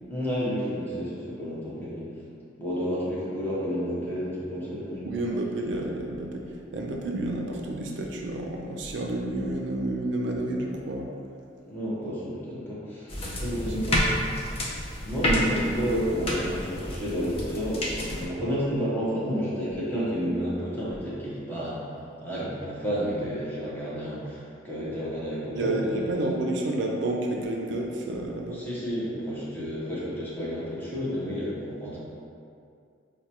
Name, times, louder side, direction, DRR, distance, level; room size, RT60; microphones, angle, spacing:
voice 1, 0.1-2.1 2.6-5.1 11.7-14.1 15.0-21.8 22.2-26.0 28.5-32.0, equal, 10° left, -9 dB, 0.8 m, -30 dB
voice 2, 5.0-11.1 13.2-13.6 25.5-28.6, right 1 dB, 70° right, 1 dB, 0.4 m, -30 dB
sound 1, 13.1-18.3, left 1 dB, 30° left, 0.5 m, -29 dB
4.6 x 2.2 x 2.8 m, 2.3 s
head